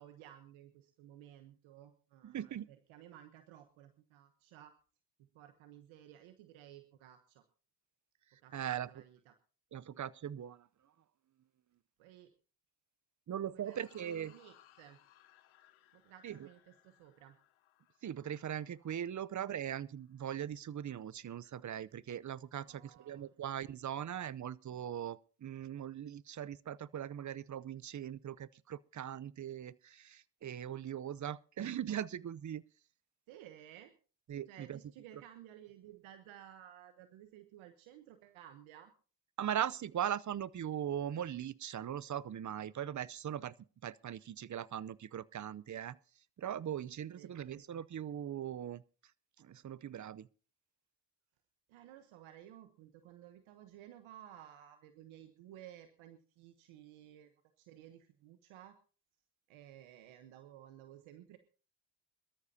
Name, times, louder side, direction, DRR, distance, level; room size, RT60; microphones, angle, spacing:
voice 1, 0.0-4.7 5.2-7.4 8.4-9.3 12.0-12.3 13.5-15.0 15.9-17.4 22.6-23.3 33.3-33.9 34.5-38.9 47.2-47.6 51.7-57.3 57.6-58.8 59.5-61.4, right 11 dB, 85° right, 1.1 m, -56 dB
voice 2, 2.2-2.7 8.5-9.0 9.7-10.7 13.3-14.3 16.2-16.5 18.0-32.6 34.3-34.8 39.4-43.5 43.8-46.0 46.4-48.8 49.4-50.3, right 10 dB, 40° right, 0.7 m, -40 dB
sound 1, 13.6-20.2, left 13 dB, 85° left, 1.3 m, -67 dB
22.5 x 13.0 x 2.8 m
supercardioid pair, 55°, 47 cm